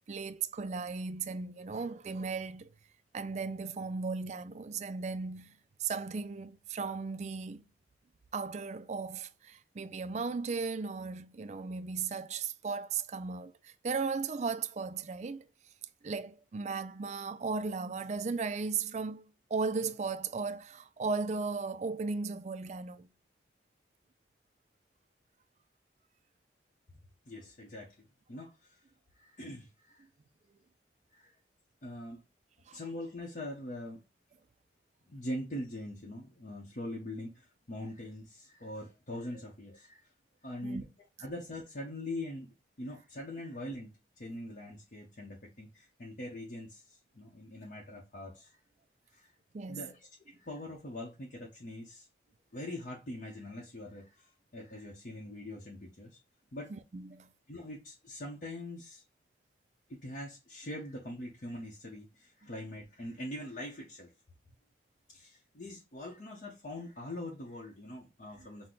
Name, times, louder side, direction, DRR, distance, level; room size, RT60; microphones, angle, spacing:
voice 1, 0.1-2.7 3.1-7.6 8.3-15.5 16.0-23.1 32.7-32.8 40.6-40.8 49.5-49.9 56.7-57.3, right 4 dB, 40° right, 0.3 m, -36 dB
voice 2, 27.3-28.8 29.2-30.0 31.1-31.4 31.8-32.2 32.7-34.0 35.1-40.1 40.4-40.9 41.2-48.6 49.1-49.3 49.7-52.1 52.5-56.2 56.5-56.7 57.5-59.0 59.9-64.1 65.1-68.7, left 1 dB, 45° left, 0.8 m, -43 dB
6.0 x 2.1 x 3.8 m
head